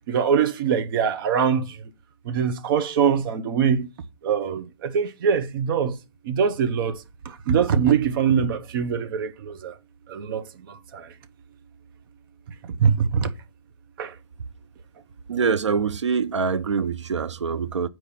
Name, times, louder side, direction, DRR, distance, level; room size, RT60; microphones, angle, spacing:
voice 1, 0.1-1.8 2.2-3.9 4.2-6.0 6.2-9.7 10.1-11.1 12.8-13.3 14.0-14.1, right 7 dB, 50° right, 1.0 m, -23 dB
voice 2, 15.3-17.9, right 5 dB, 80° right, 0.7 m, -24 dB
8.4 x 4.6 x 4.3 m
hypercardioid pair, 125°, 15 cm